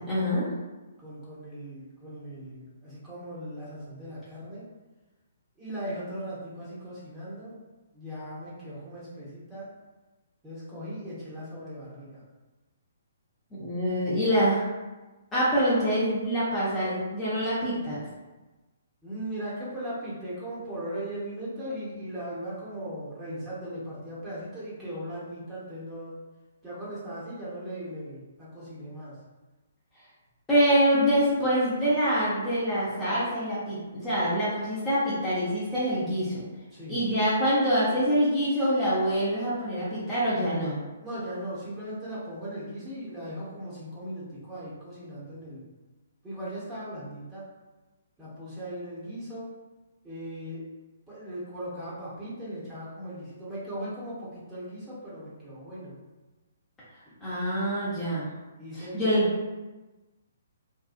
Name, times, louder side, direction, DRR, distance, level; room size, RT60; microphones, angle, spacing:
voice 1, 0.1-0.5 13.6-14.6 15.3-18.0 30.5-36.4 36.9-40.8 57.2-58.3 58.9-59.2, equal, 15° left, -12 dB, 0.8 m, -25 dB
voice 2, 1.0-4.7 5.6-7.6 7.9-9.7 10.4-12.2 19.0-26.2 26.6-29.2 36.7-37.1 41.0-45.6 46.2-47.5 48.2-49.5 50.0-50.7 51.1-56.0 57.0-57.1 58.6-59.3, right 1 dB, 15° right, -9 dB, 1.0 m, -38 dB
2.7 x 2.2 x 2.5 m, 1.1 s
figure-of-eight pair, 130°, 0 cm